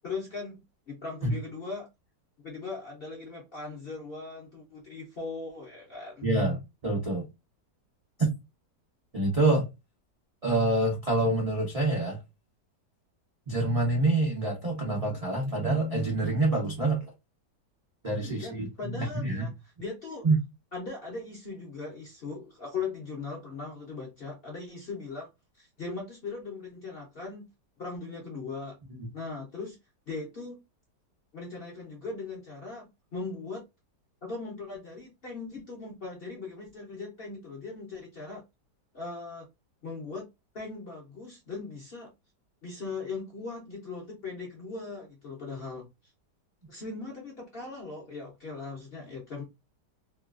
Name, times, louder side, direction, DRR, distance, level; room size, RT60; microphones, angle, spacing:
voice 1, 0.0-0.6 0.9-1.9 2.4-6.3 18.2-19.5 19.8-20.2 20.7-25.3 25.6-27.4 27.8-28.8 29.1-29.8 30.1-30.6 31.3-33.6 34.2-38.4 38.9-39.5 39.8-40.3 40.5-42.1 42.6-45.9 46.7-49.4, left 4 dB, 55° left, 0.7 m, -39 dB
voice 2, 6.2-7.2 8.2-8.3 9.1-9.7 10.4-12.2 13.5-17.1 18.0-19.5 20.2-20.4 29.0-29.1, right 2 dB, 60° right, 0.3 m, -26 dB
2.9 x 2.3 x 2.3 m
omnidirectional pair, 1.9 m